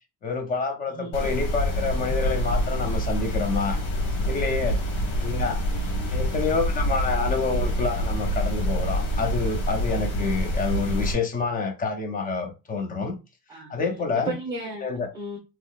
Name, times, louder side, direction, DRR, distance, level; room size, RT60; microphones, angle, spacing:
voice 1, 0.2-3.8 4.2-4.8 5.2-5.6 6.1-13.2 13.7-14.3 14.8-15.1, left 4 dB, 20° left, 0.5 m, -27 dB
sound 1, 1.1-11.1, equal, 85° left, 2.0 m, -26 dB
voice 2, 5.3-6.2 13.5-13.7 14.3-15.4, right 2 dB, 10° right, 0.9 m, -35 dB
3.8 x 3.0 x 2.3 m
cardioid pair, 145°, 48 cm